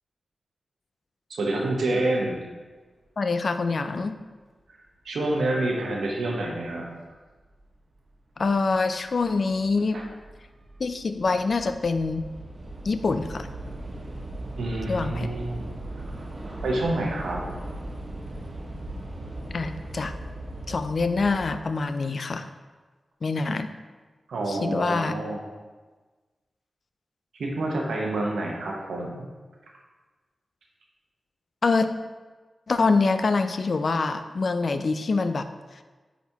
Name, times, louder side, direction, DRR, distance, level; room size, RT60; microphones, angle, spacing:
voice 1, 1.3-2.4 5.0-6.9 9.9-10.0 14.6-15.7 16.6-17.5 24.3-25.4 27.4-29.3, right 2 dB, 90° right, 0 dB, 1.0 m, -28 dB
voice 2, 3.2-4.2 8.4-10.0 10.8-12.2 12.8-13.5 14.9-15.3 19.5-20.1 20.7-22.5 23.2-23.7 24.5-25.1 31.6-31.9 32.7-35.5, left 4 dB, 65° left, 9 dB, 0.4 m, -25 dB
Train / Subway metro underground, 7.6-7.7 8.5-8.8 9.0-21.6, right 1 dB, 45° right, 1.2 m, -38 dB
8.1 x 4.1 x 2.9 m, 1.3 s
cardioid pair, 50°, 0 cm